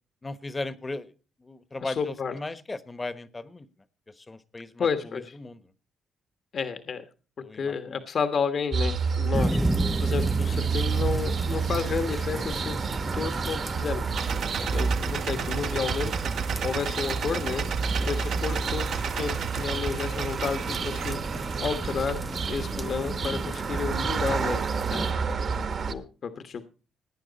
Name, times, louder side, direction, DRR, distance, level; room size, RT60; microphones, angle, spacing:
voice 1, 0.2-1.1 1.4-3.7 4.2-4.9 5.4-5.6 7.4-7.9 14.4-14.7 16.6-16.7 17.9-18.0 22.7-22.8 25.0-25.2, left 2 dB, 20° left, 13 dB, 1.1 m, -37 dB
voice 2, 1.8-2.4 4.8-5.4 6.5-7.0 7.4-9.6 10.0-12.8 13.1-14.0 14.7-16.1 16.6-17.6 18.0-21.2 21.6-22.2 22.5-24.6 24.9-25.1 25.9-26.7, left 6 dB, 55° left, 8 dB, 1.3 m, -31 dB
sound 1, 8.7-25.9, right 5 dB, 50° right, 1.4 m, -30 dB
sound 2, 9.3-25.1, right 1 dB, 5° right, 0.5 m, -35 dB
sound 3, 14.1-23.1, right 7 dB, 70° right, 1.1 m, -34 dB
18.0 x 9.7 x 4.1 m, 0.35 s
cardioid pair, 90°, 0 cm